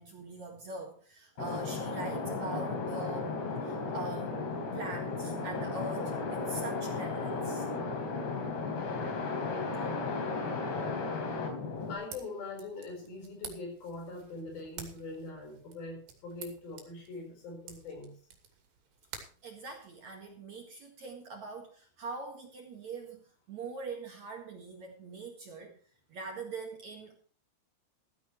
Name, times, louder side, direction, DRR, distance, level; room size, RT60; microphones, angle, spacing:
voice 1, 0.0-7.7 19.4-25.7 26.1-27.2, right 3 dB, 50° right, 2 dB, 2.6 m, -43 dB
sound 1, 1.4-11.9, left 4 dB, 80° left, 5.7 m, -35 dB
sound 2, 11.8-20.3, right 7 dB, 80° right, 4.7 m, -51 dB
voice 2, 11.9-18.2, left 3 dB, 60° left, 3 dB, 6.2 m, -42 dB
15.0 x 14.5 x 3.1 m, 0.43 s
omnidirectional pair, 4.9 m